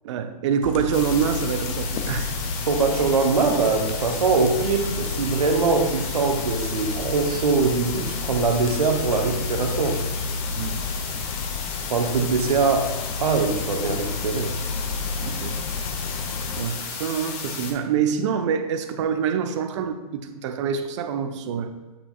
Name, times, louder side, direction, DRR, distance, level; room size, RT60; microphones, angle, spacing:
voice 1, 0.0-2.4 10.5-10.8 15.2-15.6 16.6-21.7, right 7 dB, 50° right, 8 dB, 0.7 m, -26 dB
sound 1, 0.6-16.6, left 4 dB, 55° left, 0.9 m, -32 dB
sound 2, 0.9-17.7, left 5 dB, 30° left, 1.0 m, -34 dB
voice 2, 2.6-10.0 11.9-14.6, right 4 dB, 75° right, 4 dB, 1.1 m, -22 dB
8.1 x 6.1 x 2.5 m, 1.2 s
hypercardioid pair, 115°, 20 cm